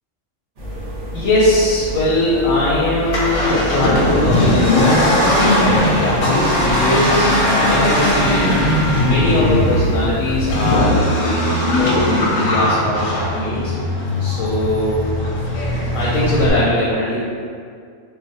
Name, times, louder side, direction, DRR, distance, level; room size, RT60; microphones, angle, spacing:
sound 1, 0.6-10.8, equal, 50° right, 0.9 m, -29 dB
voice 1, 1.1-8.6 9.0-11.4 11.7-13.7 14.2-15.0 15.9-17.2, left 1 dB, 85° left, -7 dB, 0.9 m, -20 dB
Accelerating revving vroom, 3.0-16.5, left 1 dB, 55° left, 0.7 m, -18 dB
Trumpet, 6.2-9.6, right 1 dB, 80° right, 0.4 m, -30 dB
2.4 x 2.2 x 4.0 m, 2.2 s
omnidirectional pair, 1.3 m